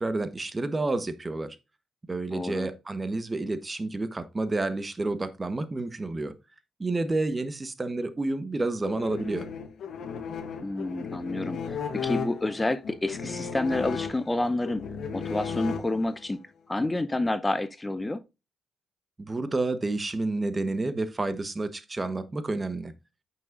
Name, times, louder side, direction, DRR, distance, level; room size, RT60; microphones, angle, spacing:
voice 1, 0.0-1.6 2.1-6.3 6.8-9.5 19.2-22.9, right 2 dB, 25° right, 1.2 m, -30 dB
voice 2, 2.3-2.7 10.6-14.9 15.1-16.4 16.7-18.2, left 2 dB, 20° left, 0.7 m, -29 dB
sound 1, 8.8-16.3, left 6 dB, 65° left, 1.3 m, -35 dB
9.0 x 6.2 x 2.5 m
supercardioid pair, 60°, 0 cm